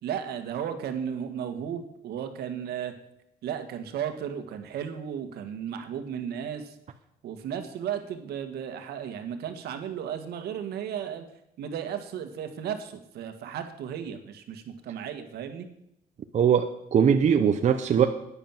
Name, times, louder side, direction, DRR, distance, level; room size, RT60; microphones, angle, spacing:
voice 1, 0.0-2.9 3.4-6.7 7.2-11.3 11.6-15.7, right 8 dB, 70° right, 7 dB, 1.8 m, -34 dB
voice 2, 16.3-18.1, right 7 dB, 45° right, 6 dB, 0.9 m, -21 dB
10.5 x 10.0 x 7.3 m, 0.80 s
cardioid pair, 110°, 17 cm